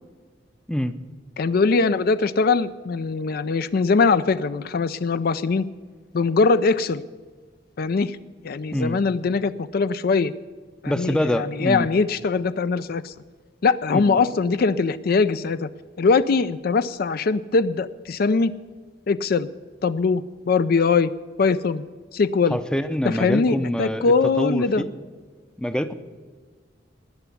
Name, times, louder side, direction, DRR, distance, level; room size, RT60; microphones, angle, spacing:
voice 1, 1.4-5.7 6.1-7.0 7.8-8.2 8.4-10.3 10.8-13.1 13.6-15.7 16.0-18.5 19.1-19.5 19.8-21.1 21.4-21.9 22.1-22.6 23.0-24.8, left 4 dB, 55° left, 14 dB, 0.4 m, -21 dB
voice 2, 10.9-11.9 13.9-14.2 22.5-24.9 25.6-25.9, equal, 5° left, 10 dB, 0.6 m, -25 dB
19.5 x 6.9 x 8.5 m, 1.5 s
head